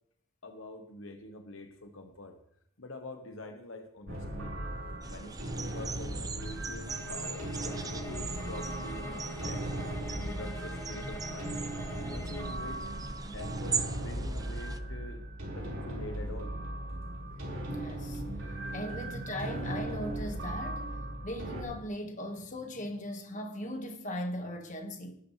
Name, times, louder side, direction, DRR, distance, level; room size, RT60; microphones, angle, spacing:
voice 1, 0.4-2.4 2.8-4.5 5.1-9.7 10.1-11.5 12.0-12.9 13.2-16.5, left 2 dB, 65° left, 1.1 m, -45 dB
sound 1, 4.1-21.6, right 1 dB, 65° right, 4.8 m, -38 dB
sound 2, 5.0-14.8, right 4 dB, 15° right, 0.5 m, -40 dB
sound 3, 6.9-12.6, left 1 dB, 15° left, 2.4 m, -45 dB
voice 2, 17.7-18.2 18.7-25.2, equal, 35° left, 1.6 m, -39 dB
18.5 x 11.0 x 3.3 m
head